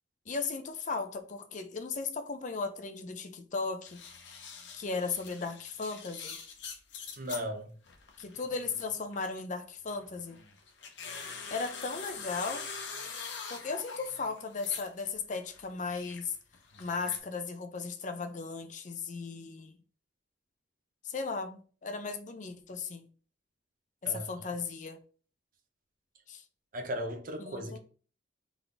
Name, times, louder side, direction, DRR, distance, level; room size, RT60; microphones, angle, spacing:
voice 1, 0.3-4.0 4.7-6.4 8.2-10.4 11.5-12.7 13.5-16.3 16.8-19.7 21.0-23.1 24.1-25.0 26.3-26.4 27.4-27.8, left 4 dB, 45° left, 0.5 m, -36 dB
sound 1, 3.9-7.5 7.9-9.4 9.9-15.1 15.4-17.2, left 5 dB, 75° left, 0.9 m, -44 dB
voice 2, 7.2-7.7 24.0-24.5 26.7-27.8, equal, 50° right, 0.8 m, -37 dB
4.0 x 3.6 x 3.4 m
head